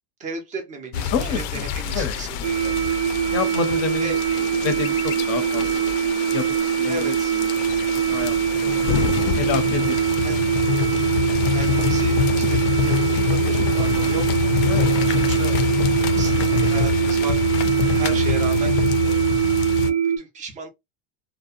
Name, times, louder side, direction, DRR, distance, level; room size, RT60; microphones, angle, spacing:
voice 1, 0.2-2.8 4.0-4.2 6.9-7.3 10.2-10.4 11.5-14.3 14.7-15.6 16.1-18.8 19.0-19.2 19.9-20.7, right 3 dB, 15° right, 0.4 m, -35 dB
sound 1, 0.9-19.9, left 10 dB, 75° left, 0.6 m, -25 dB
voice 2, 1.1-1.6 1.9-2.2 3.3-4.2 4.6-5.9 6.3-7.6 7.9-8.4 8.6-8.9 9.4-10.3 14.7-15.0, left 7 dB, 30° left, 0.6 m, -29 dB
sound 2, 2.4-20.2, right 9 dB, 85° right, 0.6 m, -22 dB
2.7 x 2.1 x 2.4 m
supercardioid pair, 150°, 49 cm